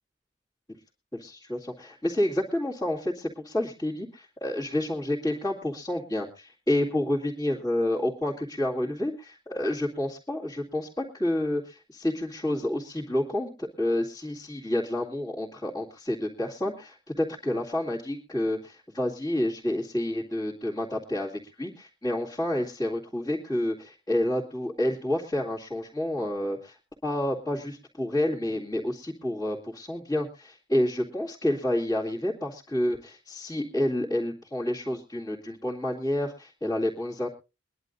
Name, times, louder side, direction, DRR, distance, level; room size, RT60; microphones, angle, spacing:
voice 1, 1.1-26.8 27.0-37.3, left 1 dB, 20° left, -9 dB, 2.4 m, -29 dB
23.5 x 11.0 x 2.6 m, 0.28 s
head